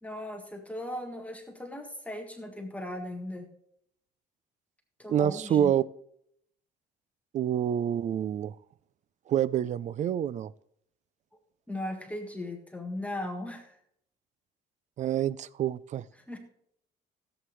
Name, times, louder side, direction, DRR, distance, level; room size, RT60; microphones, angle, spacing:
voice 1, 0.0-3.5 5.0-5.7 11.7-13.8 16.3-16.4, left 1 dB, 10° left, 4 dB, 1.6 m, -37 dB
voice 2, 5.1-5.8 7.3-8.6 9.3-10.5 15.0-16.0, right 10 dB, 45° right, 20 dB, 0.4 m, -27 dB
16.0 x 8.0 x 3.2 m, 0.70 s
cardioid pair, 110°, 17 cm